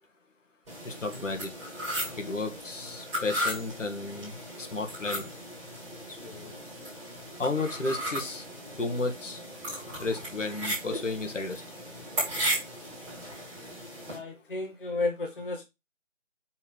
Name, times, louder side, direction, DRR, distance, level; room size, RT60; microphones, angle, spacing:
sound 1, 0.7-14.2, equal, 5° right, 2.3 m, -36 dB
voice 1, 0.8-1.5 2.2-4.3 4.6-5.3 6.1-6.5 7.4-8.4 8.8-9.4 10.0-11.6, left 3 dB, 70° left, 1.5 m, -33 dB
voice 2, 14.0-15.6, left 3 dB, 40° left, 0.9 m, -32 dB
5.7 x 3.6 x 4.9 m
figure-of-eight pair, 165°, 39 cm